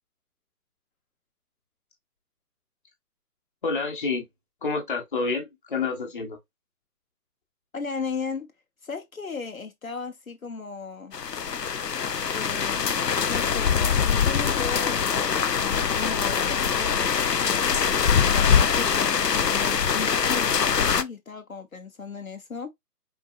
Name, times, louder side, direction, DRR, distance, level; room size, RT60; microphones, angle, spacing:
voice 1, 3.6-4.2 4.6-6.4, left 4 dB, 30° left, 1.2 m, -28 dB
voice 2, 7.7-8.5 8.8-11.1 12.3-17.8 18.2-22.7, left 5 dB, 60° left, 1.0 m, -36 dB
sound 1, 11.1-21.0, left 7 dB, 85° left, 0.7 m, -23 dB
4.5 x 3.9 x 2.4 m
figure-of-eight pair, 145°, 47 cm